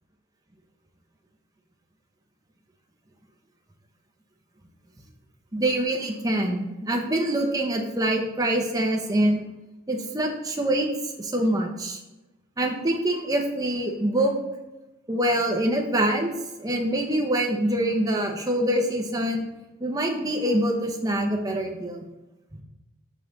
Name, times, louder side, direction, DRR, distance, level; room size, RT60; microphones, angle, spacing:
voice 1, 5.5-9.4 9.9-10.9 11.2-12.0 12.6-14.3 15.1-16.3 16.6-19.5 19.8-22.0 22.5-22.6, right 1 dB, 15° right, 1 dB, 0.9 m, -25 dB
6.5 x 5.5 x 4.0 m, 1.0 s
head